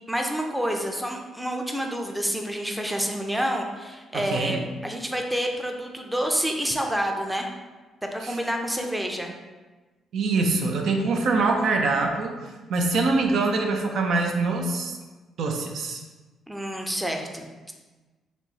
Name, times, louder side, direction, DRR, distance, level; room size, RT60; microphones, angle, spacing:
voice 1, 0.1-7.5 8.0-9.3 16.5-17.7, equal, 5° right, 2 dB, 0.5 m, -28 dB
voice 2, 4.1-4.6 8.2-8.4 10.1-12.4 12.7-15.0 15.4-16.0, right 3 dB, 70° right, 2 dB, 0.5 m, -24 dB
4.4 x 3.1 x 2.7 m, 1.2 s
cardioid pair, 90°, 0 cm